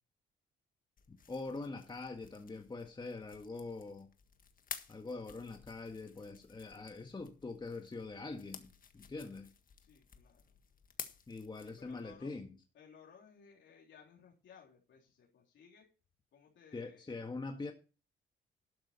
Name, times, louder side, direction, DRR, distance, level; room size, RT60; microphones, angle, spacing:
sound 1, 1.0-12.1, left 6 dB, 45° left, 1.6 m, -53 dB
voice 1, 1.1-4.1 4.9-9.5 11.3-12.5 16.7-17.7, left 3 dB, 20° left, 1.6 m, -44 dB
voice 2, 9.8-10.6 11.6-12.4 12.7-15.9 16.3-17.0, left 6 dB, 70° left, 3.6 m, -60 dB
12.5 x 8.8 x 4.3 m
cardioid pair, 90°, 20 cm